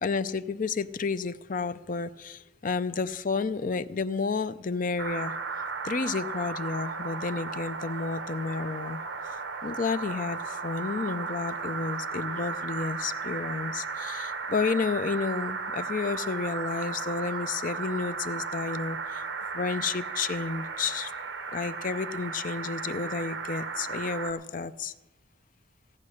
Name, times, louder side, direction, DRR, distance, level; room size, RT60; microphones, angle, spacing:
voice 1, 0.0-5.4 5.8-9.0 9.6-19.2 19.5-21.1 21.5-24.9, left 4 dB, 45° left, 14 dB, 0.5 m, -31 dB
sound 1, 5.0-24.3, right 4 dB, 60° right, 1.0 m, -35 dB
16.0 x 8.6 x 6.4 m, 1.1 s
head